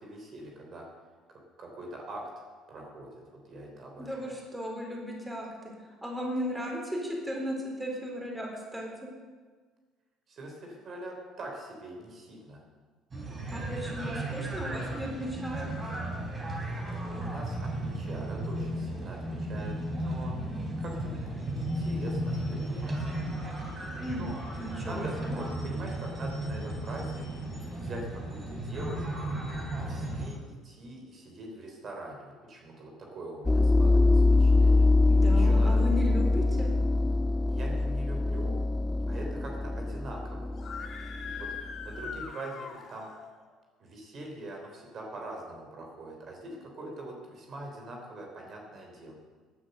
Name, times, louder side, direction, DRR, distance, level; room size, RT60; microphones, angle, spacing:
voice 1, 0.0-0.8 1.3-2.2 2.7-3.2 3.5-4.4 10.3-12.6 17.0-23.3 24.2-24.3 24.8-27.2 27.7-29.3 29.7-35.8 37.5-38.6 39.1-40.5 41.4-41.5 41.8-43.1 43.8-49.1, right 1 dB, 50° right, 1 dB, 3.5 m, -43 dB
voice 2, 4.0-5.7 6.0-9.1 13.5-15.7 24.0-24.2 24.6-25.4 35.1-36.7, equal, 5° right, -1 dB, 4.1 m, -36 dB
sound 1, 13.1-30.3, right 1 dB, 30° right, 3.7 m, -34 dB
sound 2, 33.4-42.2, left 3 dB, 15° left, 0.5 m, -24 dB
Screaming, 40.5-43.3, left 6 dB, 45° left, 2.1 m, -41 dB
15.0 x 9.8 x 6.6 m, 1.5 s
supercardioid pair, 80°, 0 cm